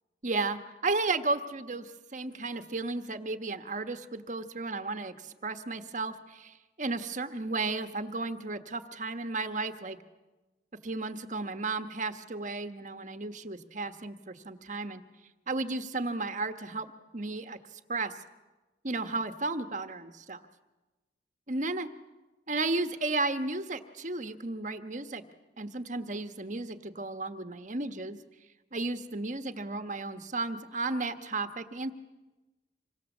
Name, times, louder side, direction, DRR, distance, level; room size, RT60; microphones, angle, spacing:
voice 1, 0.2-10.0 10.8-15.0 15.5-17.6 17.9-18.1 18.8-20.4 21.5-21.9 22.5-25.2 25.6-28.2 28.7-31.9, right 3 dB, 45° right, 8 dB, 1.3 m, -34 dB
26.5 x 24.0 x 7.3 m, 1.2 s
head